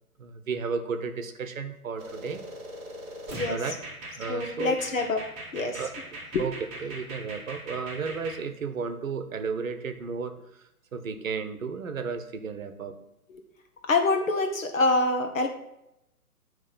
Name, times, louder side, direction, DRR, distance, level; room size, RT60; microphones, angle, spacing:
voice 1, 0.2-2.4 3.4-3.7 4.1-4.7 5.7-12.9, right 5 dB, 60° right, 8 dB, 0.9 m, -33 dB
sound 1, 2.0-8.4, right 1 dB, 20° right, 1.2 m, -40 dB
voice 2, 4.3-5.2 5.5-5.8 13.9-15.5, left 3 dB, 60° left, 5 dB, 1.0 m, -25 dB
8.7 x 3.2 x 5.3 m, 0.85 s
figure-of-eight pair, 135°, 45 cm